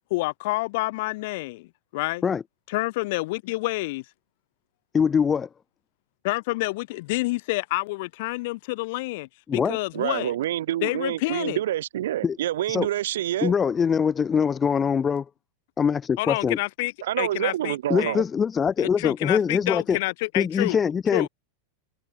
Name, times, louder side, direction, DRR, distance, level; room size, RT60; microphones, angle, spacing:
voice 1, 0.1-1.7 1.9-2.2 2.7-4.0 6.2-10.3 10.8-11.6 16.2-18.1 18.8-20.8 21.1-21.3, left 22 dB, 50° left, 1.0 m, -28 dB
voice 2, 4.9-5.5 9.5-9.8 12.2-12.4 12.7-12.9 13.4-15.3 15.8-16.6 17.9-20.0 20.4-21.3, left 6 dB, 20° left, 0.4 m, -23 dB
voice 3, 9.9-13.5 17.0-18.2, right 12 dB, 60° right, 0.5 m, -27 dB
figure-of-eight pair, 90°, 0 cm